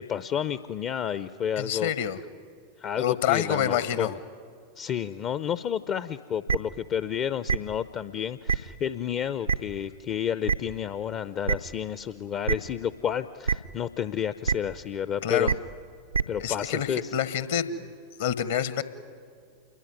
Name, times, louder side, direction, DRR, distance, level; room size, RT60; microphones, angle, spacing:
voice 1, 0.0-1.9 2.8-4.2 4.8-15.5 16.3-17.1, left 8 dB, 35° left, 14 dB, 0.6 m, -30 dB
voice 2, 1.6-2.2 3.0-4.1 15.2-15.5 16.4-17.9 18.2-18.8, left 9 dB, 55° left, 14 dB, 1.3 m, -27 dB
sound 1, 6.5-6.6 7.5-7.6 8.5-8.6 9.5-9.6 10.5-10.6 11.5-11.6 12.5-12.6 13.5-13.6 14.4-14.5 15.4-15.5 16.1-16.2, right 6 dB, 80° right, 0.7 m, -23 dB
28.0 x 22.0 x 9.7 m, 2.2 s
figure-of-eight pair, 90°, 0 cm